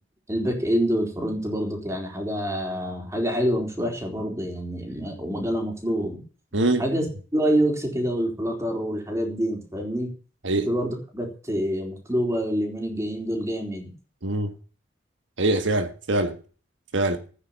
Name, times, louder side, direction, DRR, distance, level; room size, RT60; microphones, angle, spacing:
voice 1, 0.3-6.2 6.8-7.1 7.3-10.1 10.6-13.9, equal, 15° right, 4.0 m, -26 dB
voice 2, 6.5-6.8 10.4-10.7 14.2-14.5 15.4-16.4 16.9-17.2, right 2 dB, 80° right, 1.6 m, -23 dB
14.5 x 9.6 x 7.3 m
head